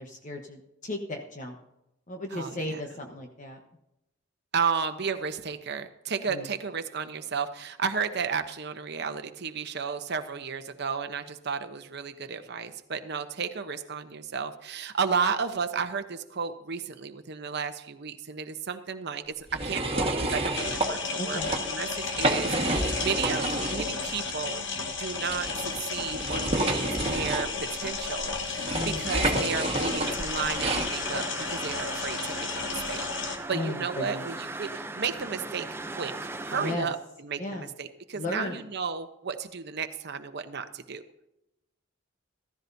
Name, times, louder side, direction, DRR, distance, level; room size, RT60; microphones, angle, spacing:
voice 1, 0.0-1.6 2.1-3.6 6.3-6.5 21.2-21.5 28.7-29.1 33.5-34.2 36.5-36.9 37.4-37.7 38.1-38.7, left 1 dB, 40° left, 3 dB, 1.1 m, -35 dB
voice 2, 2.3-2.8 4.5-24.6 25.0-26.8 27.1-41.0, right 6 dB, 60° right, 8 dB, 0.9 m, -33 dB
sound 1, 19.5-20.9 21.3-21.6 22.0-23.9 24.2-24.3 25.3-30.9, right 2 dB, 30° right, 1.5 m, -29 dB
sound 2, 20.5-33.4, left 4 dB, 65° left, 1.4 m, -33 dB
sound 3, 30.0-36.8, right 2 dB, 10° right, 0.6 m, -38 dB
15.0 x 14.0 x 2.7 m, 0.86 s
head